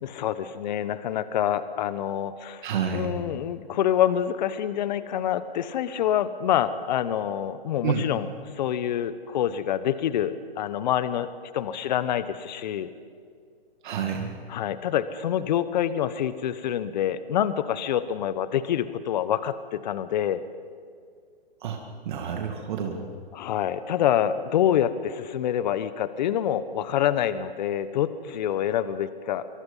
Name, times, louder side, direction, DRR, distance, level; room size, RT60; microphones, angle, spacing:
voice 1, 0.0-2.6 2.9-8.3 8.6-12.9 14.5-20.4 23.3-29.5, left 10 dB, 45° left, 14 dB, 1.1 m, -26 dB
voice 2, 2.6-3.2 7.8-8.0 13.8-14.4 21.6-21.8 22.1-23.1, right 7 dB, 50° right, 3 dB, 2.3 m, -29 dB
24.5 x 23.5 x 5.6 m, 2.1 s
hypercardioid pair, 140°, 31 cm